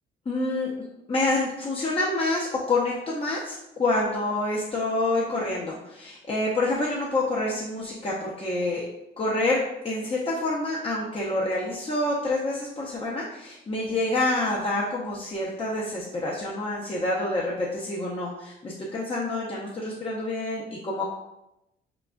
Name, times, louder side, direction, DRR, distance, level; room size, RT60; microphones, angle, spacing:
voice 1, 0.3-0.7 1.1-8.9 9.2-21.0, left 2 dB, 30° left, -5 dB, 0.8 m, -27 dB
4.6 x 3.8 x 2.3 m, 0.90 s
cardioid pair, 90°, 20 cm